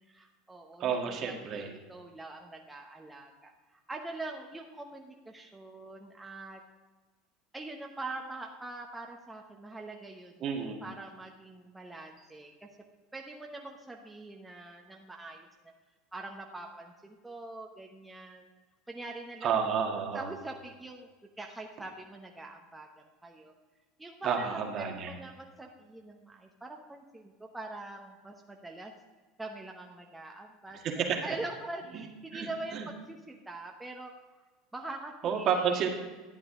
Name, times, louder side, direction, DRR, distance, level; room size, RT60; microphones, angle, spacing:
voice 1, 0.1-6.6 7.5-12.7 13.1-15.5 16.1-18.5 18.9-19.7 20.1-21.1 21.4-22.9 23.2-23.5 24.0-28.9 29.4-34.1 34.7-35.8, right 2 dB, 10° right, 1 dB, 1.1 m, -43 dB
voice 2, 0.8-1.7 10.4-10.8 19.4-20.3 24.2-25.1 30.8-31.2 31.9-32.0 32.3-32.9 35.2-35.9, right 7 dB, 50° right, 2 dB, 1.7 m, -30 dB
11.0 x 8.2 x 3.8 m, 1.3 s
supercardioid pair, 95°, 0 cm